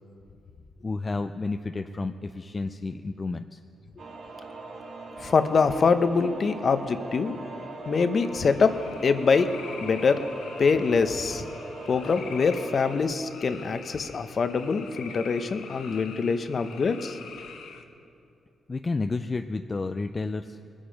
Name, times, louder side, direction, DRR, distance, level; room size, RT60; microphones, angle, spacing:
voice 1, 0.8-3.6 18.7-20.6, left 3 dB, 30° left, 8 dB, 0.4 m, -31 dB
sound 1, 4.0-13.0, right 2 dB, 70° right, 2.4 m, -41 dB
voice 2, 5.2-7.4 7.9-9.5 9.8-10.3 10.6-11.5 11.9-17.2, left 5 dB, 50° left, 10 dB, 0.8 m, -24 dB
sound 2, 8.1-17.8, left 6 dB, 85° left, 1.0 m, -45 dB
21.0 x 8.8 x 5.2 m, 2.6 s
cardioid pair, 85°, 0 cm